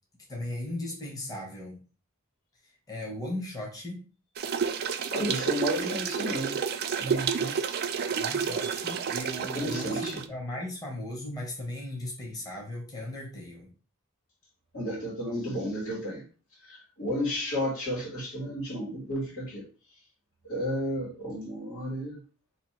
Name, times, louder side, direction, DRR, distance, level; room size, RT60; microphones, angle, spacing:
voice 1, 0.3-1.8 2.6-4.0 8.1-13.7, left 1 dB, 15° left, 0.8 m, -37 dB
sound 1, 4.4-10.2, right 6 dB, 45° right, 0.3 m, -30 dB
voice 2, 5.1-6.6 7.0-7.5 9.5-10.2 14.7-16.2 16.7-19.6 20.4-22.2, equal, 85° left, 1.8 m, -32 dB
2.8 x 2.6 x 4.2 m
head